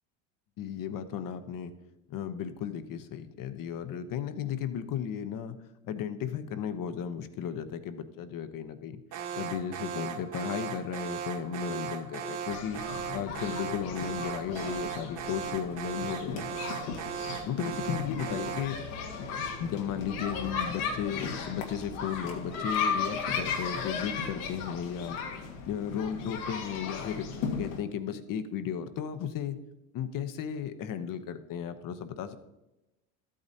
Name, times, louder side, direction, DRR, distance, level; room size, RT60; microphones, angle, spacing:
voice 1, 0.6-1.7 2.1-5.6 5.9-9.0 9.3-12.8 13.1-16.5 17.5-18.8 19.6-25.2 25.7-27.3 27.6-29.6 29.9-32.4, left 8 dB, 50° left, 10 dB, 1.0 m, -35 dB
Alarm, 9.1-18.8, right 8 dB, 45° right, 1.1 m, -37 dB
sound 1, 12.5-27.8, left 5 dB, 80° left, 1.7 m, -36 dB
13.0 x 8.7 x 2.8 m, 0.95 s
supercardioid pair, 90°, 43 cm